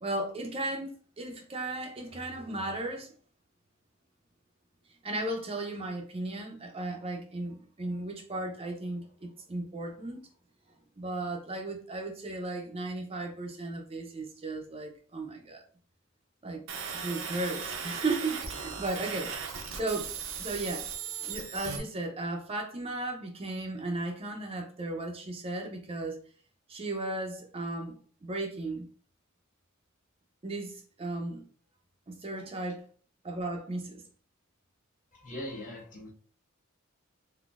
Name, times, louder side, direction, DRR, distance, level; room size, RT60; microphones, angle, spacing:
voice 1, 0.0-3.1 5.0-10.2 11.0-15.6 16.4-16.6 17.0-19.3 19.7-20.1 20.4-20.9 21.3-26.2 26.7-28.9 30.4-31.4 32.1-32.8 33.2-34.0, right 2 dB, 30° right, 0.5 m, -35 dB
sound 1, 16.7-21.8, right 6 dB, 90° right, 0.7 m, -37 dB
voice 2, 35.1-36.1, left 1 dB, 40° left, 1.2 m, -41 dB
3.8 x 2.7 x 2.4 m
head